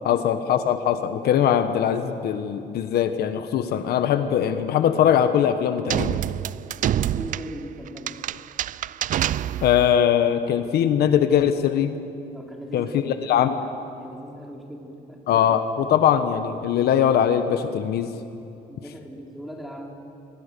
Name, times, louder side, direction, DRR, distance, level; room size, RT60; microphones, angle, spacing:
voice 1, 0.0-6.2 9.6-11.9 12.7-13.6 15.3-18.1, left 9 dB, 70° left, 9 dB, 1.3 m, -21 dB
sound 1, 5.9-10.0, right 11 dB, 50° right, 0.5 m, -27 dB
voice 2, 7.0-8.1 12.3-13.7 14.0-15.2 18.7-20.0, equal, ahead, 0 dB, 4.0 m, -39 dB
25.5 x 22.5 x 6.9 m, 2.7 s
cardioid pair, 110°, 17 cm